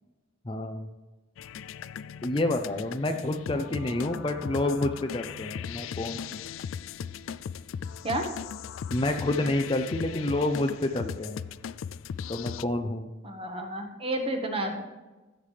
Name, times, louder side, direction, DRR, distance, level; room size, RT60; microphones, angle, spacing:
voice 1, 0.4-0.9 2.2-6.2 8.9-11.4 12.3-13.1, left 2 dB, 25° left, 5 dB, 0.6 m, -28 dB
sound 1, 1.4-12.6, left 7 dB, 80° left, 0.3 m, -38 dB
voice 2, 13.2-14.8, right 1 dB, 30° right, 3 dB, 1.4 m, -31 dB
15.5 x 6.7 x 3.3 m, 1.2 s
head